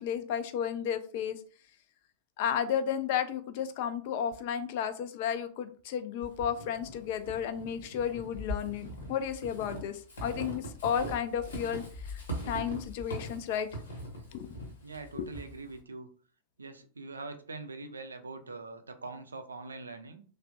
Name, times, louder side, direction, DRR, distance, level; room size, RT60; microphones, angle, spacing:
voice 1, 0.0-1.4 2.4-13.7 14.3-14.5 15.2-15.3, left 8 dB, 50° left, 11 dB, 0.3 m, -33 dB
Walk footsteps / Squeak, 6.2-15.8, equal, 70° left, 0.9 m, -41 dB
voice 2, 14.8-16.1 16.6-20.2, right 3 dB, 75° right, 7 dB, 0.4 m, -43 dB
3.2 x 2.1 x 2.5 m, 0.42 s
figure-of-eight pair, 90°, 0 cm